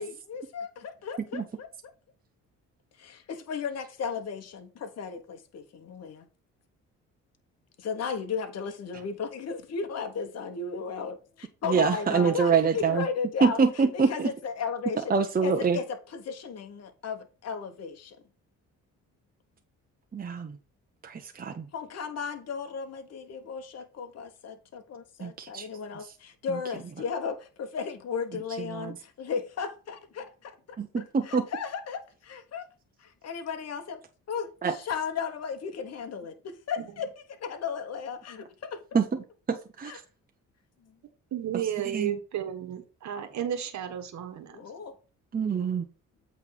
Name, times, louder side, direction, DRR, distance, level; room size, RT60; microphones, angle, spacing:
voice 1, 0.0-1.7 3.0-6.3 7.8-15.1 15.4-18.2 21.7-30.5 31.0-32.7 33.0-34.0 34.3-38.8 39.8-40.0 44.5-45.0, left 6 dB, 55° left, 1.3 m, -35 dB
voice 2, 11.7-13.0 13.4-14.3 15.1-15.8 20.1-20.5 21.0-21.6 25.2-25.7 28.7-28.9 30.8-31.4 34.6-34.7 38.9-39.2 39.5-39.9 41.9-42.2 45.3-45.8, right 5 dB, 30° right, 1.0 m, -25 dB
voice 3, 41.3-44.6, right 9 dB, 65° right, 1.5 m, -33 dB
8.2 x 3.5 x 5.9 m
cardioid pair, 90°, 30 cm